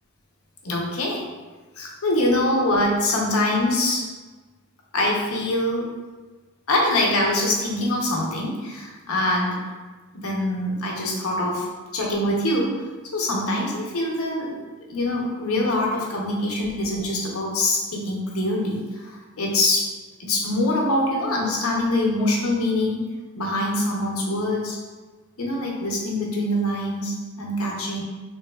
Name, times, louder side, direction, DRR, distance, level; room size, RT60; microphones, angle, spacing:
voice 1, 0.6-1.2 1.8-4.0 4.9-5.9 6.7-9.6 10.1-11.5 11.9-12.7 13.1-14.6 14.9-19.9 20.2-23.1 23.3-24.8 25.4-28.0, left 1 dB, 75° left, -2 dB, 0.7 m, -24 dB
3.4 x 3.0 x 2.2 m, 1.3 s
head